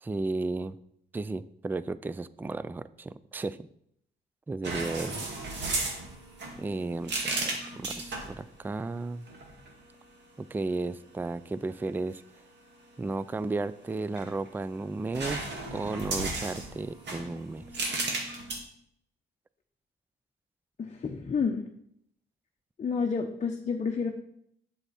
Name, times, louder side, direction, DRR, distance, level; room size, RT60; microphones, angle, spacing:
voice 1, 0.0-0.8 1.1-3.7 4.5-5.3 6.6-9.3 10.4-12.2 13.0-18.0, right 3 dB, 10° right, 16 dB, 0.3 m, -34 dB
sound 1, 4.6-8.4 9.3-9.7 13.9-14.7 15.1-18.6, right 2 dB, 60° right, 2.2 m, -34 dB
voice 2, 20.8-21.6 22.8-24.1, left 5 dB, 35° left, 2 dB, 0.9 m, -29 dB
8.0 x 7.0 x 4.2 m, 0.70 s
cardioid pair, 90°, 20 cm